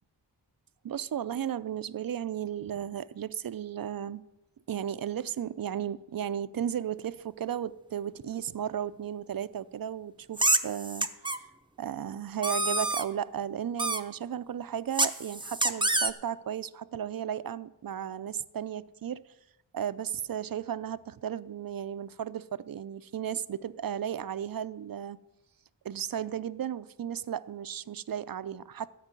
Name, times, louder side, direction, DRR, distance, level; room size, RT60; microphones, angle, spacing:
voice 1, 0.8-4.2 4.7-11.1 11.8-19.2 19.7-25.2 25.8-28.9, right 9 dB, 55° right, 0.5 m, -34 dB
sound 1, 10.4-11.4 12.4-13.0 13.8-14.0 14.9-16.1, right 2 dB, 10° right, 0.6 m, -27 dB
13.5 x 5.4 x 9.0 m
wide cardioid pair, 75°, 43 cm